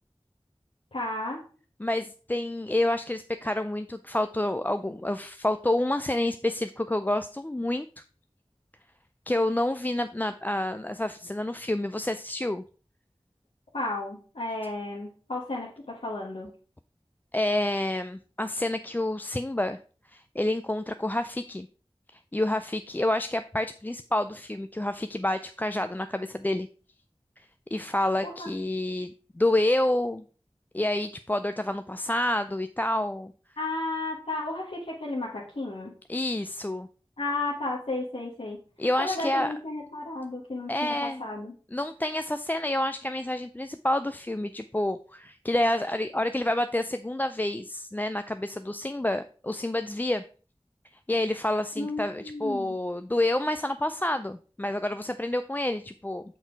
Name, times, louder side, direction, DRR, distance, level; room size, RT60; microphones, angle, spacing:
voice 1, 0.9-1.4 13.7-16.5 28.2-28.5 33.6-35.9 37.2-38.6 39.0-41.5 51.8-52.8, left 2 dB, 85° left, -6 dB, 1.4 m, -33 dB
voice 2, 1.8-7.9 9.3-12.6 17.3-19.8 20.1-21.7 22.3-26.7 27.4-27.5 27.7-30.2 30.7-33.3 36.1-36.9 38.8-39.5 40.7-41.2 41.7-50.2 51.1-56.2, left 1 dB, 20° left, 9 dB, 0.3 m, -28 dB
5.9 x 4.5 x 4.6 m, 0.39 s
wide cardioid pair, 45°, 10 cm